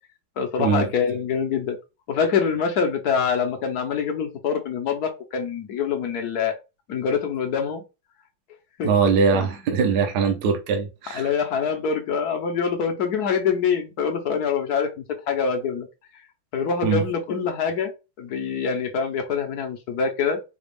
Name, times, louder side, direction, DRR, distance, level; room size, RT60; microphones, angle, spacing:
voice 1, 0.4-1.8 2.1-6.6 6.9-7.8 8.8-8.9 9.3-9.8 11.1-15.9 16.5-17.9 18.2-20.4, left 6 dB, 60° left, 1.1 m, -25 dB
voice 2, 8.8-11.3 16.8-17.0, right 5 dB, 60° right, 1.2 m, -21 dB
5.0 x 2.3 x 3.4 m
omnidirectional pair, 2.3 m